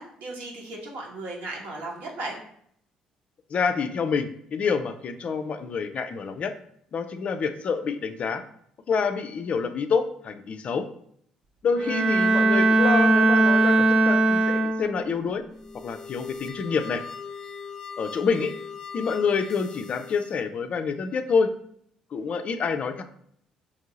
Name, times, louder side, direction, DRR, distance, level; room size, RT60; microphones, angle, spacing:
voice 1, 0.0-2.4, right 2 dB, 60° right, -2 dB, 1.1 m, -36 dB
voice 2, 3.5-6.5 6.9-8.4 8.9-10.9 11.6-15.4 15.8-17.0 18.0-18.5 18.9-21.5 22.1-23.0, left 5 dB, 45° left, 7 dB, 0.4 m, -27 dB
Bowed string instrument, 11.8-15.2, right 2 dB, 35° right, 0.4 m, -20 dB
sound 1, 15.5-20.4, left 6 dB, 10° left, 0.7 m, -40 dB
3.0 x 2.7 x 3.8 m, 0.67 s
figure-of-eight pair, 45°, 3 cm